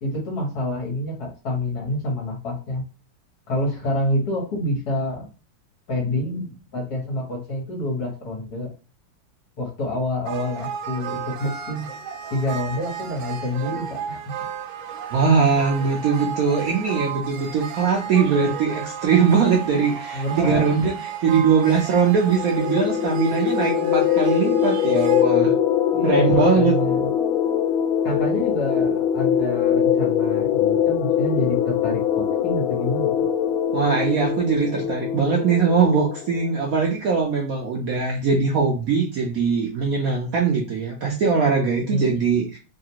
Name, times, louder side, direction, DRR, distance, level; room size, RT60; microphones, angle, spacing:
voice 1, 0.0-2.8 3.5-5.3 5.9-8.7 9.6-11.9 12.3-14.2 20.1-20.7 25.9-27.1 28.0-33.1 41.9-42.1, left 1 dB, 55° left, -1 dB, 1.6 m, -27 dB
sound 1, 10.3-25.2, right 8 dB, 90° right, 1.4 m, -33 dB
voice 2, 15.1-20.9 21.2-25.5 26.0-26.8 33.7-42.6, right 5 dB, 70° right, -1 dB, 0.8 m, -21 dB
sound 2, 22.3-36.6, left 9 dB, 85° left, 1.4 m, -22 dB
3.5 x 2.4 x 2.8 m, 0.33 s
omnidirectional pair, 2.1 m